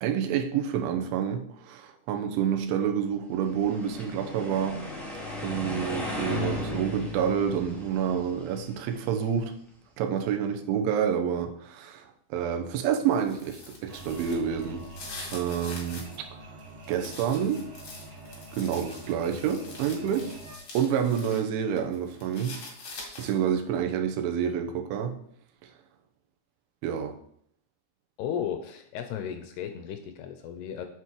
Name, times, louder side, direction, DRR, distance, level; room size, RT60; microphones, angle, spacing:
voice 1, 0.0-4.8 5.4-9.5 10.0-14.9 15.3-16.1 16.9-17.6 18.5-20.4 20.8-22.6 23.2-25.2 25.6-25.7 26.8-27.2, right 8 dB, 90° right, 6 dB, 3.4 m, -28 dB
sound 1, 3.4-9.6, left 2 dB, ahead, 1.3 m, -36 dB
sound 2, 13.0-16.2 16.6-21.4 21.8-23.5, left 3 dB, 40° left, 2.4 m, -44 dB
sound 3, 13.9-20.6, right 2 dB, 70° right, 1.5 m, -46 dB
voice 2, 28.2-30.9, left 8 dB, 80° left, 7 dB, 2.5 m, -34 dB
8.2 x 7.3 x 4.8 m, 0.66 s
omnidirectional pair, 5.3 m